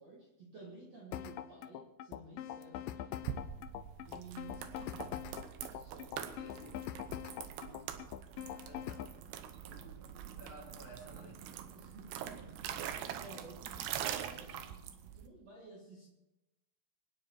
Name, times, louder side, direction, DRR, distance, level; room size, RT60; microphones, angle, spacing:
voice 1, 0.0-3.2 4.0-5.4 5.7-6.2 7.4-8.0 11.7-16.1, right 2 dB, 50° right, -2 dB, 2.4 m, -54 dB
sound 1, 1.1-9.1, left 11 dB, 90° left, 1.9 m, -43 dB
water in stone, 3.2-15.3, right 10 dB, 80° right, 3.0 m, -44 dB
voice 2, 6.2-6.8 8.5-9.0 9.6-11.4, right 1 dB, 40° left, -3 dB, 4.6 m, -54 dB
24.0 x 9.7 x 4.4 m, 0.93 s
omnidirectional pair, 4.9 m